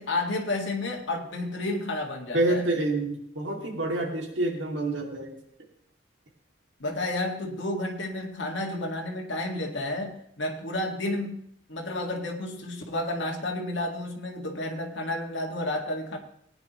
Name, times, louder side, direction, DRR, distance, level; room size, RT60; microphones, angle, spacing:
voice 1, 0.0-2.6 6.8-16.2, left 2 dB, 75° left, 1 dB, 1.8 m, -31 dB
voice 2, 2.3-5.3, right 2 dB, 75° right, 0 dB, 2.3 m, -27 dB
18.5 x 9.8 x 3.0 m, 0.69 s
head